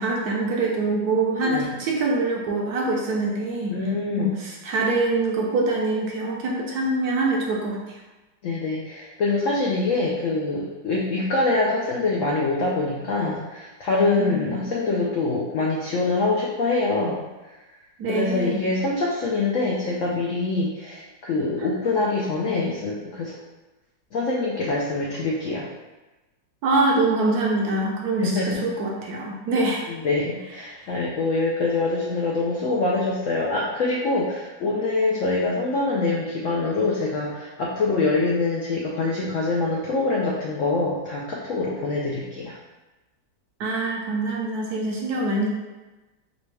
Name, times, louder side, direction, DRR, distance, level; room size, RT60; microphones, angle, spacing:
voice 1, 0.0-3.7 4.2-8.0 14.2-15.0 18.0-18.6 26.6-29.8 43.6-45.5, right 2 dB, 70° right, -2 dB, 1.0 m, -24 dB
voice 2, 3.7-4.3 8.4-17.3 18.1-23.3 24.1-25.7 28.2-28.7 29.9-42.6, left 3 dB, 85° left, -3 dB, 0.7 m, -24 dB
5.0 x 2.2 x 3.2 m, 1.1 s
omnidirectional pair, 2.0 m